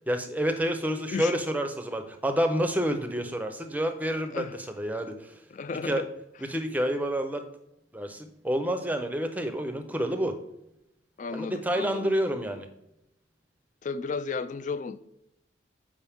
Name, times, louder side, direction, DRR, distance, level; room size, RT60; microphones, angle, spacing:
voice 1, 0.1-4.5 4.8-5.3 5.8-6.0 6.5-7.5 7.9-10.4 11.3-12.7, equal, 10° right, 7 dB, 0.6 m, -28 dB
voice 2, 5.5-6.1 11.2-12.1 13.8-15.0, left 4 dB, 40° left, 12 dB, 0.3 m, -33 dB
7.1 x 5.2 x 3.5 m, 0.84 s
head